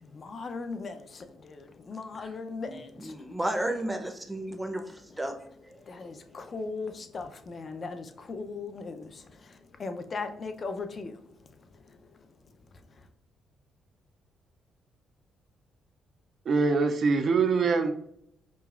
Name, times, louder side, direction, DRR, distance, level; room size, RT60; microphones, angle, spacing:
voice 1, 0.0-3.2 5.8-11.2 11.8-12.1, left 4 dB, 40° left, 7 dB, 0.5 m, -38 dB
voice 2, 2.6-5.4 5.7-5.8, right 1 dB, 10° right, 5 dB, 0.6 m, -33 dB
voice 3, 16.5-17.9, right 4 dB, 55° right, 6 dB, 0.4 m, -23 dB
5.0 x 2.3 x 2.3 m, 0.71 s
cardioid pair, 90°, 0 cm